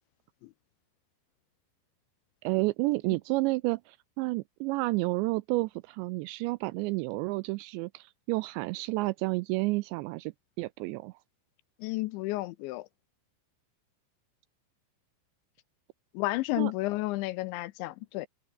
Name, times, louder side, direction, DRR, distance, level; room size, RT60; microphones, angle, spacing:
voice 1, 2.4-11.2 16.6-16.7, right 23 dB, 85° right, 2.5 m, -30 dB
voice 2, 11.8-12.9 16.1-18.3, left 19 dB, 85° left, 2.8 m, -31 dB
omnidirectional pair, 5.6 m